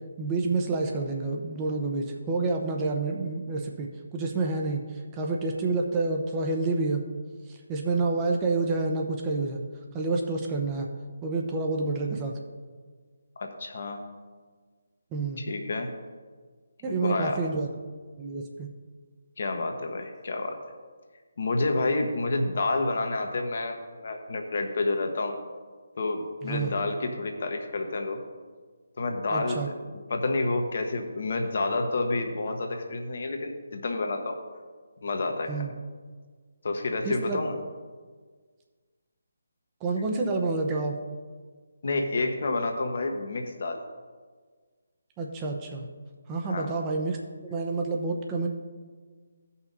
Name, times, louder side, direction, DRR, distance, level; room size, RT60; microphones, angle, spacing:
voice 1, 0.2-4.8 5.1-7.0 7.5-9.6 9.9-10.9 11.2-12.4 15.1-15.4 16.8-17.7 18.2-18.7 26.4-26.7 29.3-29.7 35.5-35.7 37.0-37.4 39.8-41.0 45.2-45.9 46.3-47.2 47.5-48.5, right 3 dB, 20° right, 1 dB, 0.8 m, -28 dB
voice 2, 13.4-14.2 15.4-15.9 16.8-17.4 19.4-20.6 21.4-25.4 26.0-28.2 29.0-34.4 35.0-35.6 36.6-37.6 41.8-43.8 46.4-46.7, left 2 dB, 55° left, 4 dB, 1.2 m, -29 dB
15.0 x 5.7 x 4.1 m, 1.5 s
figure-of-eight pair, 150°, 0 cm